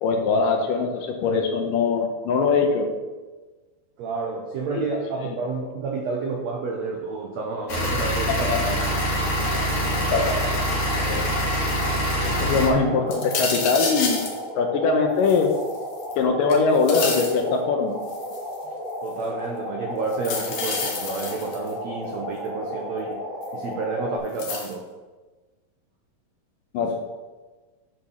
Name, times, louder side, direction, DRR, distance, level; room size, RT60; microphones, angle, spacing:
voice 1, 0.0-2.9 4.8-4.9 8.3-8.6 10.1-10.4 10.9-11.3 12.2-14.2 14.6-15.5 16.2-18.0 26.7-26.9, left 4 dB, 75° left, 3 dB, 2.4 m, -22 dB
voice 2, 4.0-8.8 12.5-12.7 19.0-23.3 23.5-24.9 26.8-26.9, right 4 dB, 80° right, 0 dB, 1.5 m, -30 dB
sound 1, 7.7-12.7, equal, 45° left, 3.5 m, -24 dB
sound 2, 8.5-24.2, left 1 dB, 20° left, 3.0 m, -34 dB
sound 3, 13.1-14.4 15.2-16.1 16.5-17.4 18.1-18.5 20.1-21.7 23.4-23.5 24.4-24.7, left 5 dB, 60° left, 1.6 m, -29 dB
8.5 x 5.3 x 5.7 m, 1.3 s
omnidirectional pair, 4.2 m